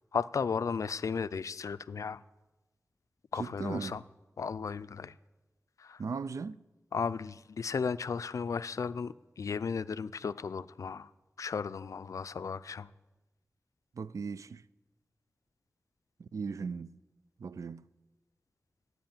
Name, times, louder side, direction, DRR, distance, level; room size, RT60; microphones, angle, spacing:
voice 1, 0.1-2.2 3.3-4.0 4.4-5.1 5.8-6.0 6.9-11.1 11.4-12.9, left 5 dB, 80° left, 0.4 m, -35 dB
voice 2, 3.3-4.0 6.0-6.6 13.9-14.6 16.2-17.0 17.4-17.9, right 5 dB, 80° right, 0.4 m, -38 dB
12.0 x 9.5 x 8.9 m
wide cardioid pair, 70°, 5 cm